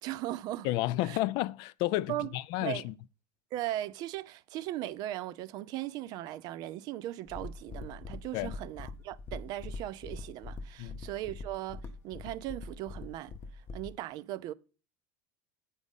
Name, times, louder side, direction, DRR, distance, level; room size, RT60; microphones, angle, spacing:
voice 1, 0.0-0.7 1.0-1.2 2.1-2.3 2.6-2.8 3.5-13.3 13.7-14.5, right 14 dB, 45° right, 0.5 m, -38 dB
voice 2, 0.6-2.9 8.3-8.5 10.8-11.0, left 16 dB, 50° left, 0.3 m, -31 dB
sound 1, 7.3-14.0, left 3 dB, 25° left, 0.7 m, -43 dB
8.3 x 5.2 x 5.3 m
cardioid pair, 155°, 9 cm